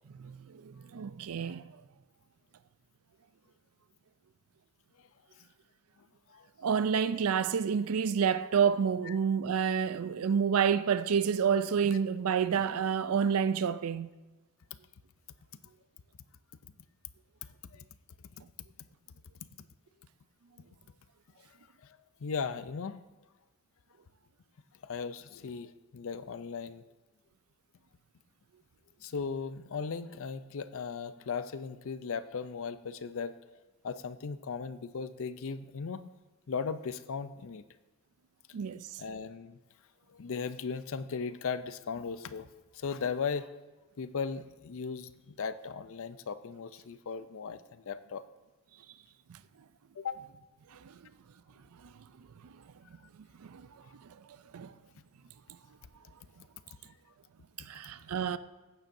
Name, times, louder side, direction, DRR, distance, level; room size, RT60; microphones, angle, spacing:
voice 1, 0.2-1.7 6.6-14.1 38.5-38.9 50.7-50.9 51.8-51.9 52.4-52.6 53.4-54.1 54.5-54.7 57.6-58.4, right 7 dB, 70° right, 0.4 m, -29 dB
voice 2, 21.8-23.0 24.8-26.8 29.0-33.4 33.8-36.0 36.5-37.6 39.0-39.6 40.1-42.5 42.7-43.5 44.0-48.2 50.0-50.2, left 5 dB, 65° left, 0.5 m, -37 dB
15.0 x 9.1 x 2.6 m
head